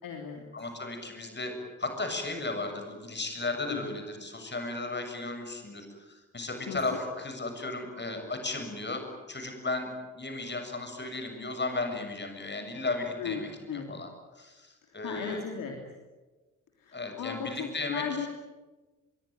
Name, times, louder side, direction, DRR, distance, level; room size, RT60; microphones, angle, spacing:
voice 1, 0.0-0.4 3.7-3.8 6.7-7.0 13.2-13.4 13.7-13.9 15.0-15.8 16.8-18.3, left 7 dB, 55° left, 2 dB, 3.3 m, -36 dB
voice 2, 0.5-14.1 14.4-15.4 16.9-18.3, left 2 dB, 25° left, 6 dB, 7.1 m, -35 dB
26.0 x 22.5 x 9.5 m, 1.2 s
figure-of-eight pair, 40°, 39 cm